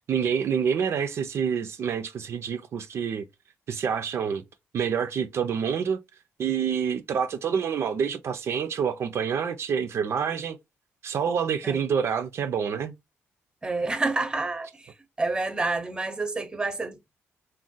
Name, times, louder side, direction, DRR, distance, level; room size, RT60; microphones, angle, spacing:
voice 1, 0.1-3.3 3.7-4.4 4.7-6.0 6.4-10.6 11.0-12.9, right 7 dB, 60° right, 0.3 m, -27 dB
voice 2, 13.6-17.1, right 3 dB, 15° right, 0.6 m, -29 dB
2.4 x 2.1 x 3.8 m
cardioid pair, 80°, 5 cm